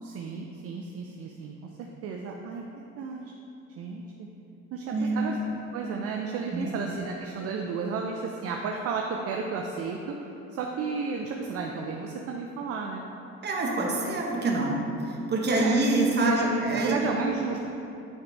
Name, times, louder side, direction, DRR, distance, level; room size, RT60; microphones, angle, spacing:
voice 1, 0.0-2.6 3.0-3.2 3.8-4.3 4.7-5.4 5.7-10.2 10.5-13.0 15.6-15.8 16.2-17.6, right 5 dB, 55° right, 1 dB, 0.5 m, -33 dB
voice 2, 4.9-5.3 6.5-6.7 13.4-14.8 15.1-16.3 16.6-16.9, right 2 dB, 35° right, -1 dB, 1.0 m, -26 dB
8.6 x 3.9 x 3.4 m, 2.9 s
cardioid pair, 120°, 29 cm